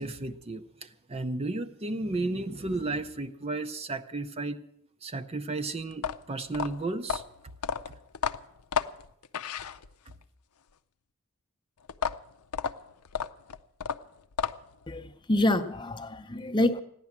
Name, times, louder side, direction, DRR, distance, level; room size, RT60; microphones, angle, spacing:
voice 1, 0.0-4.6 5.0-7.2, right 2 dB, 25° right, 0.5 m, -33 dB
sound 1, 5.9-10.2 11.9-14.8, left 7 dB, 85° left, 0.6 m, -33 dB
voice 2, 14.9-16.8, left 1 dB, 20° left, 0.7 m, -27 dB
15.5 x 10.5 x 7.2 m
head